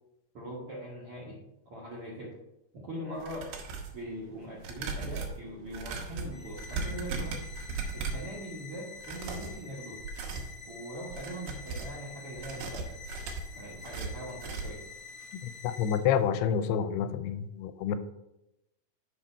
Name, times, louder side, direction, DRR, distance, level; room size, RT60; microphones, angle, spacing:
voice 1, 0.3-1.4 1.6-2.4 2.7-3.5 3.9-7.5 7.9-10.0 10.7-13.0 13.6-14.9, equal, 60° right, -5 dB, 1.4 m, -41 dB
sound 1, 3.2-4.0 4.6-8.3 9.0-9.6 10.0-10.5 11.0-12.0 12.4-14.9 15.2-15.3 15.7-15.8, right 4 dB, 80° right, 3.0 m, -37 dB
sound 2, 6.3-16.0, left 5 dB, 45° left, 1.9 m, -48 dB
voice 2, 15.3-18.0, left 8 dB, 85° left, 11 dB, 2.5 m, -29 dB
6.7 x 5.8 x 4.3 m, 0.89 s
omnidirectional pair, 4.6 m